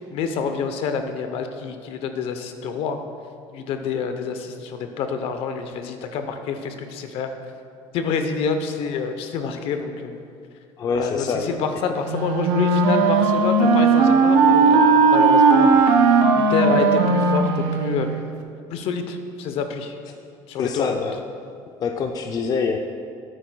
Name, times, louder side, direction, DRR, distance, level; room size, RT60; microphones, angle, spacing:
voice 1, 0.0-3.0 3.5-7.3 7.9-10.2 10.9-16.1 16.3-18.2 18.7-20.0 20.5-21.0, left 5 dB, 65° left, 7 dB, 0.8 m, -27 dB
voice 2, 10.8-11.9 17.4-17.6 20.6-21.2 21.8-22.8, left 5 dB, 40° left, 4 dB, 0.5 m, -25 dB
Wind instrument woodwind instrument, 12.1-18.2, right 4 dB, 90° right, 0.8 m, -17 dB
12.5 x 8.9 x 2.3 m, 2.4 s
cardioid pair, 130°, 10 cm